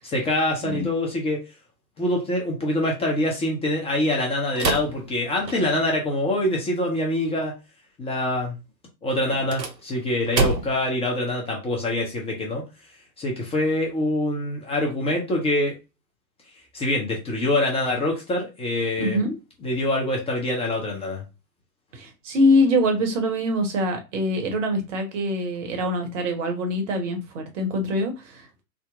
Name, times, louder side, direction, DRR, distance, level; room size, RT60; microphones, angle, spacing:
voice 1, 0.0-1.4 2.0-7.5 8.0-8.5 9.0-12.6 13.2-15.7 16.7-19.2 19.6-21.2, left 1 dB, 10° left, 0 dB, 0.8 m, -25 dB
sound 1, 4.5-6.0 9.3-10.9, right 3 dB, 85° right, 0.8 m, -27 dB
voice 2, 19.0-19.3 21.9-28.6, left 1 dB, 50° right, 5 dB, 1.2 m, -24 dB
3.8 x 2.2 x 3.5 m, 0.28 s
figure-of-eight pair, 100°, 49 cm